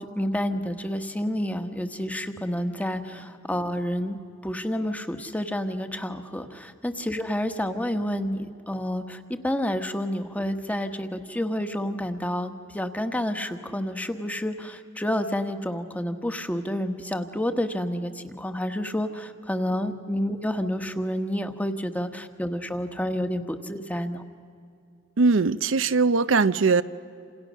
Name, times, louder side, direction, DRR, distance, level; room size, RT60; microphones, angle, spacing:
voice 1, 0.0-4.2 4.4-24.2, equal, 10° left, 7 dB, 1.3 m, -29 dB
voice 2, 25.2-26.8, right 4 dB, 75° right, 13 dB, 0.7 m, -20 dB
28.5 x 27.5 x 6.4 m, 2.4 s
head